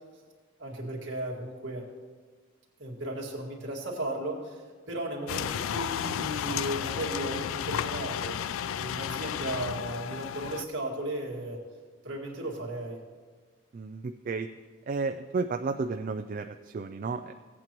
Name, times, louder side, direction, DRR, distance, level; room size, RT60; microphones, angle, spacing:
voice 1, 0.6-1.9 2.8-8.4 8.8-11.6 12.0-13.0, right 1 dB, 60° right, -3 dB, 2.1 m, -35 dB
sound 1, 5.3-10.6, left 9 dB, 90° left, 0.3 m, -33 dB
voice 2, 13.7-14.5 14.9-17.3, right 4 dB, 40° right, 7 dB, 0.3 m, -32 dB
16.5 x 8.6 x 3.0 m, 1.5 s
head